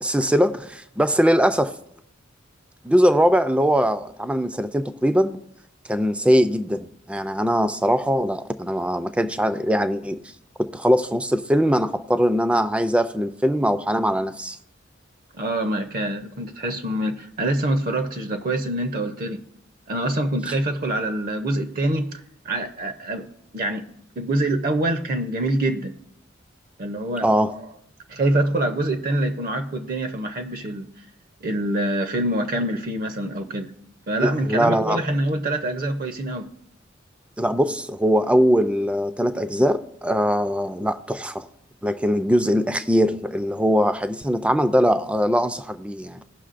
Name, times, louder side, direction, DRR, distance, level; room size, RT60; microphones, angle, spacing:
voice 1, 0.0-1.8 2.8-5.4 5.9-10.2 10.6-14.6 27.2-27.5 34.2-35.0 37.4-41.5 41.8-46.2, equal, 5° right, 0.4 m, -21 dB
voice 2, 15.4-19.4 19.9-23.9 24.2-25.9 26.8-27.3 28.1-30.9 31.4-33.7 34.1-36.5, right 1 dB, 50° right, 0.7 m, -25 dB
18.0 x 6.0 x 2.5 m
head